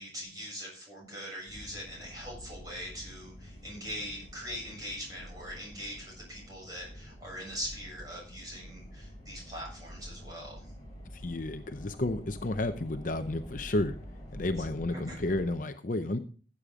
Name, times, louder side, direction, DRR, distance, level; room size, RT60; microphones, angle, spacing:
voice 1, 0.0-10.7 14.9-15.2, equal, 20° right, -3 dB, 7.3 m, -42 dB
sound 1, 1.5-15.5, equal, 20° left, 6.7 m, -47 dB
voice 2, 11.2-13.9 14.3-16.2, left 2 dB, 45° left, 8 dB, 0.7 m, -31 dB
15.0 x 8.5 x 3.7 m, 0.39 s
head